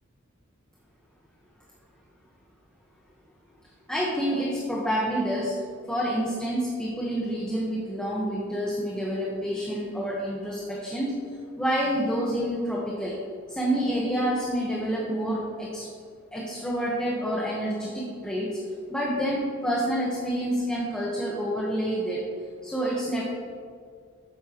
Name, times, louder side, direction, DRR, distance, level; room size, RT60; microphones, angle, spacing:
voice 1, 3.9-5.6 5.9-11.2 11.6-13.2 13.5-15.9 16.3-18.6 18.9-22.3 22.6-23.2, equal, 5° left, -4 dB, 1.3 m, -28 dB
13.0 x 9.1 x 3.1 m, 2.1 s
head